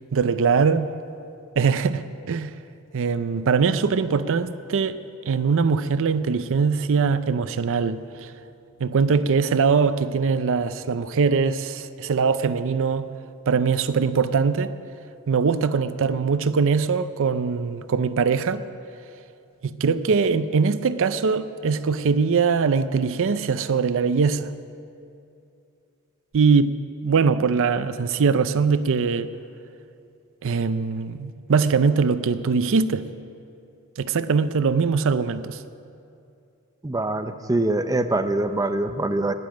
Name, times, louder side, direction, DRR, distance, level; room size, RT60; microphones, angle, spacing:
voice 1, 0.1-0.9 1.6-2.5 2.9-5.0 5.3-8.3 8.8-13.1 13.5-14.7 15.3-18.6 19.6-24.5 26.3-26.8 27.0-29.3 30.4-33.0 34.0-35.6, right 5 dB, 65° right, 0.5 m, -22 dB
voice 2, 36.8-39.3, right 2 dB, 15° right, 0.6 m, -24 dB
12.0 x 10.5 x 9.1 m
head